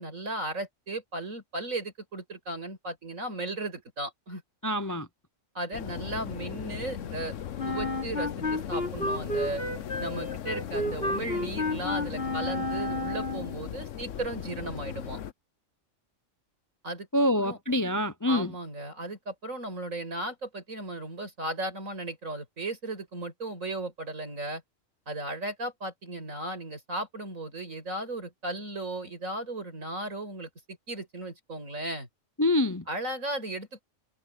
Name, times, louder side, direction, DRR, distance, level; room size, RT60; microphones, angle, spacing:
voice 1, 0.0-4.4 5.5-7.4 7.6-9.6 10.0-15.2 16.8-17.1 17.4-17.6 18.3-24.6 25.1-32.1 32.9-33.8, right 2 dB, 85° right, 6.5 m, -36 dB
voice 2, 4.6-5.1 17.1-18.5 32.4-32.8, left 1 dB, 25° left, 0.5 m, -26 dB
sound 1, 5.7-15.3, left 9 dB, 70° left, 1.2 m, -38 dB
Wind instrument woodwind instrument, 7.6-13.6, left 1 dB, 45° left, 3.4 m, -31 dB
omnidirectional pair, 1.4 m